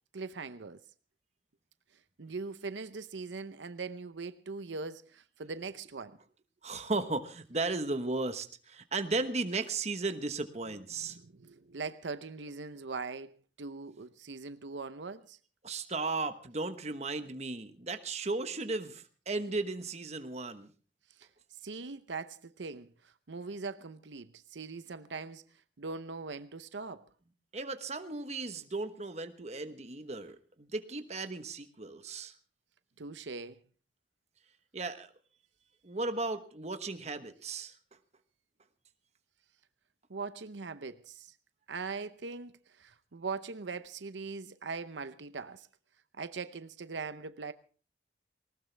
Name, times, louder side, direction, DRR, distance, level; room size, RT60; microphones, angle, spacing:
voice 1, 0.1-0.8 2.2-6.2 11.1-15.4 21.2-21.3 21.6-25.4 25.8-27.0 33.0-33.6 40.1-41.3 41.7-45.7 46.2-47.5, right 4 dB, 85° right, 0.8 m, -41 dB
voice 2, 6.6-11.2 15.6-20.7 27.5-32.3 34.7-35.1 35.8-37.7, right 3 dB, 35° right, 1.2 m, -35 dB
19.0 x 19.0 x 3.4 m
head